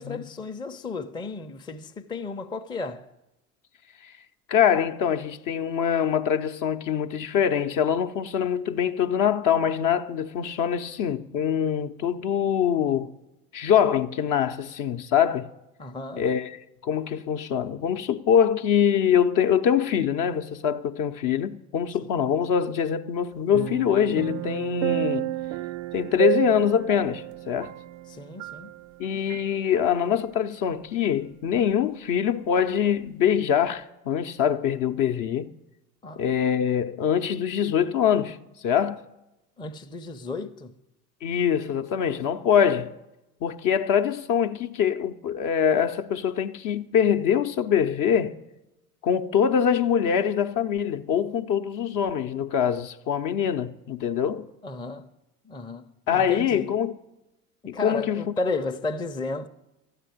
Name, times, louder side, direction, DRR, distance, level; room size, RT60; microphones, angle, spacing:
voice 1, 0.0-3.1 15.8-16.3 28.1-28.7 36.0-36.2 39.6-40.7 54.6-55.1 55.5-56.6 57.7-59.5, left 3 dB, 10° left, 0.6 m, -33 dB
voice 2, 4.5-13.1 13.5-15.5 16.2-25.3 25.9-27.7 29.0-35.5 36.1-38.4 38.6-39.0 41.2-42.9 43.4-48.4 49.0-54.5 56.1-57.0 57.7-58.3, left 8 dB, 45° left, 0.8 m, -24 dB
sound 1, 23.5-29.0 29.3-29.5, right 17 dB, 60° right, 0.5 m, -30 dB
12.5 x 8.2 x 9.2 m
hypercardioid pair, 70°, 44 cm